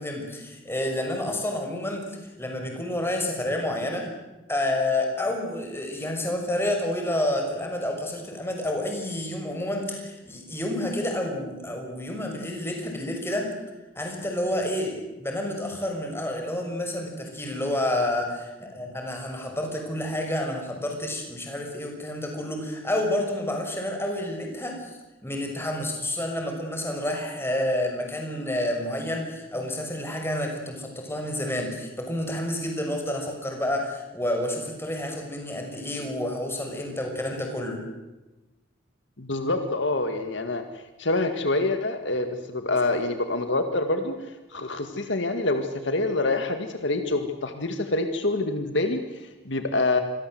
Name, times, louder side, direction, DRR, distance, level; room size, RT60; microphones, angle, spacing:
voice 1, 0.0-4.1 4.5-13.5 13.9-37.8, left 1 dB, 10° left, 2 dB, 6.2 m, -29 dB
voice 2, 39.2-40.6 41.0-44.2 44.5-50.0, left 2 dB, 65° left, 7 dB, 2.1 m, -26 dB
27.5 x 23.0 x 7.9 m, 1.1 s
head